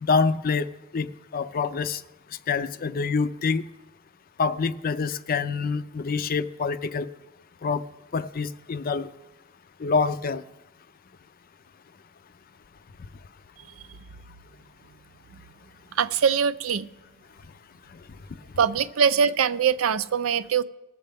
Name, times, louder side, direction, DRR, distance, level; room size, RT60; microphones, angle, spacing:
voice 1, 0.0-0.7 0.9-1.1 1.3-2.0 2.5-3.6 4.4-7.1 7.6-7.8 8.1-9.1 9.8-10.4 17.9-18.0, left 4 dB, 45° left, 0.4 m, -26 dB
voice 2, 16.0-16.9 18.6-20.6, right 7 dB, 85° right, 0.5 m, -22 dB
19.5 x 7.6 x 3.5 m
head